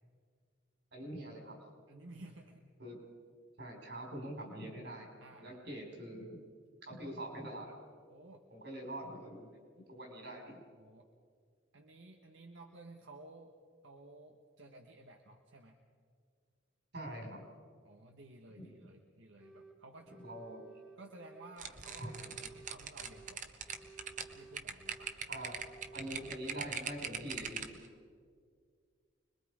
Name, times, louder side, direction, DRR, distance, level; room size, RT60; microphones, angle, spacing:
voice 1, 0.9-1.6 2.8-3.0 3.6-5.1 5.4-6.4 6.8-7.8 8.5-9.6 9.9-10.6 16.9-17.5 18.5-18.8 20.2-20.7 22.0-22.3 25.3-25.5 25.9-27.8, right 1 dB, 60° right, 1 dB, 4.8 m, -44 dB
voice 2, 1.9-2.6 5.2-5.8 8.1-8.5 10.7-11.1 11.7-13.5 13.8-15.8 17.8-20.2 21.0-23.4 24.3-25.1, right 2 dB, 90° right, 3 dB, 1.3 m, -55 dB
sound 1, 19.4-19.8 20.1-21.6 21.9-23.4 23.7-25.2 25.5-26.4, right 3 dB, 5° right, 1.0 m, -56 dB
sound 2, 21.6-27.9, right 6 dB, 40° right, 1.1 m, -41 dB
25.5 x 21.5 x 4.9 m, 2.1 s
head